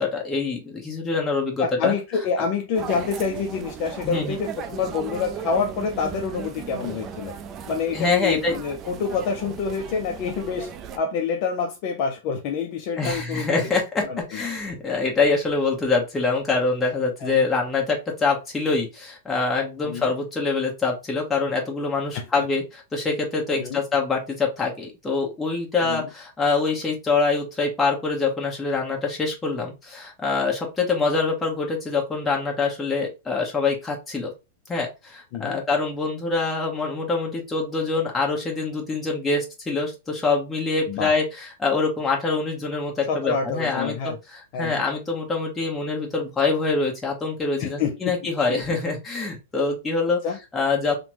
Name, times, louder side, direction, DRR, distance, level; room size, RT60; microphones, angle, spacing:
voice 1, 0.0-1.9 4.0-4.4 7.9-8.5 13.0-34.3 34.7-50.2 50.5-51.0, left 4 dB, 10° left, 0.9 m, -25 dB
voice 2, 1.6-7.3 7.7-13.7 14.1-14.5 17.2-17.5 19.8-20.1 22.1-22.4 23.5-23.8 25.8-26.1 35.3-35.6 40.9-41.1 43.1-44.2 44.5-44.8 47.6-48.2 48.5-48.6 50.2-50.4, left 5 dB, 45° left, 0.4 m, -27 dB
sound 1, 2.7-11.0, right 7 dB, 25° right, 0.3 m, -37 dB
3.2 x 2.0 x 2.9 m
supercardioid pair, 150°, 0 cm